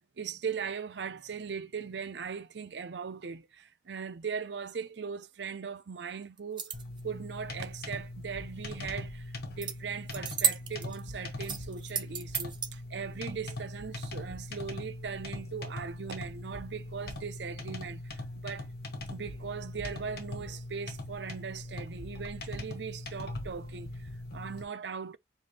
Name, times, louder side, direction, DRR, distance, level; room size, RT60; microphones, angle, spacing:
voice 1, 0.2-6.7 7.0-18.7 19.1-25.2, right 6 dB, 70° right, 0.5 m, -39 dB
sound 1, 6.4-7.0 9.6-9.7 10.1-11.0 11.4-12.7, right 8 dB, 25° right, 0.7 m, -32 dB
sound 2, 6.7-24.6, left 2 dB, 60° left, 1.4 m, -41 dB
5.1 x 2.7 x 3.8 m
head